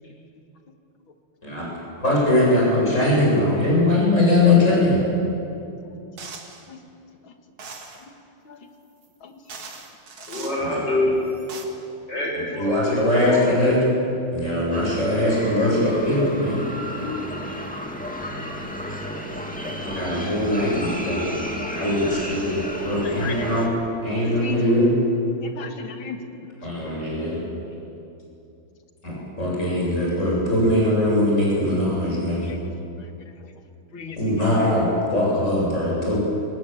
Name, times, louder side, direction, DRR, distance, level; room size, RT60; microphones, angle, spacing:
voice 1, 2.0-5.0 10.6-10.8 12.5-13.8 14.3-16.6 19.8-23.7 24.0-24.9 26.6-27.4 29.0-32.5 34.2-34.8 35.1-36.2, left 1 dB, 35° left, -4 dB, 8.4 m, -21 dB
sound 1, 6.2-6.6 7.6-8.0 9.0-9.1 9.5-10.6 11.2-11.6, right 4 dB, 75° right, 2.9 m, -39 dB
voice 2, 9.2-9.5 10.2-10.3 17.3-17.6 21.4-21.6 23.0-23.4 24.1-24.6 25.4-26.7 32.4-33.6 33.9-34.7, left 5 dB, 70° left, 6 dB, 2.4 m, -38 dB
voice 3, 10.3-11.2 12.1-13.5, left 1 dB, 55° left, -2 dB, 7.2 m, -26 dB
sound 2, 14.7-23.7, equal, 5° left, 2.1 m, -32 dB
23.0 x 18.0 x 9.0 m, 2.7 s
omnidirectional pair, 2.3 m